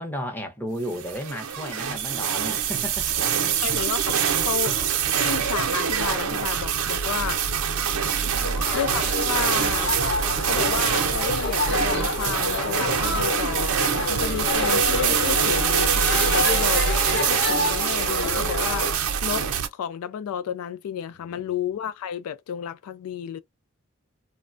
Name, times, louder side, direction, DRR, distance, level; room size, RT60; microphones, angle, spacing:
voice 1, 0.0-3.1 3.3-3.5 8.2-8.7 16.1-16.3 21.1-21.5, equal, 10° left, 0.7 m, -34 dB
sound 1, 0.9-19.7, right 7 dB, 80° right, 0.6 m, -24 dB
voice 2, 3.6-4.2 4.4-7.4 8.4-9.9 10.4-13.8 14.1-23.4, left 8 dB, 85° left, 0.3 m, -32 dB
sound 2, 8.4-18.9, left 3 dB, 55° left, 0.9 m, -28 dB
3.1 x 2.1 x 2.5 m
head